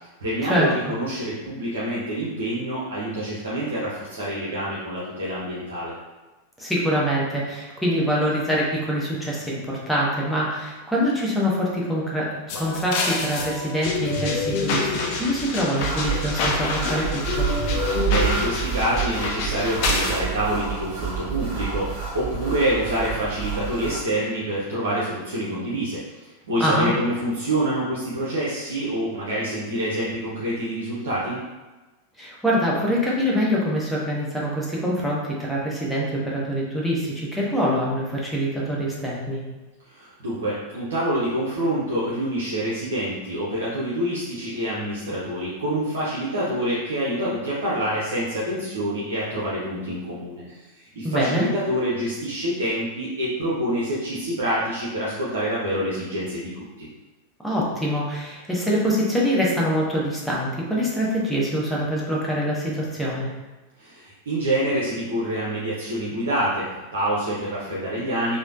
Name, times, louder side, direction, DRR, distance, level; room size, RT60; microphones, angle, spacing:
voice 1, 0.2-5.9 18.0-26.2 26.4-31.4 39.9-50.6 50.9-56.9 63.8-68.4, right 1 dB, 65° right, -8 dB, 0.6 m, -26 dB
voice 2, 6.6-17.5 26.6-26.9 32.2-39.4 51.0-51.5 57.4-63.3, equal, ahead, -6 dB, 0.7 m, -24 dB
sound 1, 12.5-20.2, left 4 dB, 45° left, 0.4 m, -27 dB
sound 2, 15.8-24.0, right 7 dB, 25° right, 1.2 m, -29 dB
3.1 x 2.0 x 2.4 m, 1.2 s
figure-of-eight pair, 90°, 0 cm